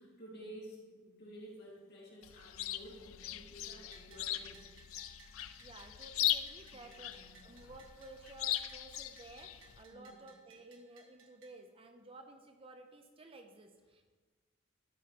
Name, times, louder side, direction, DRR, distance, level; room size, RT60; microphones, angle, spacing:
voice 1, 0.0-4.7 6.7-7.5 9.9-10.3, equal, 50° left, -4 dB, 2.9 m, -52 dB
Chirp tweet, 2.2-9.8, left 13 dB, 80° left, 0.4 m, -39 dB
Bell, 3.9-11.5, right 4 dB, 65° right, 1.5 m, -62 dB
voice 2, 5.6-14.0, right 2 dB, 25° right, 6 dB, 0.6 m, -54 dB
12.0 x 5.2 x 5.1 m, 1.5 s
head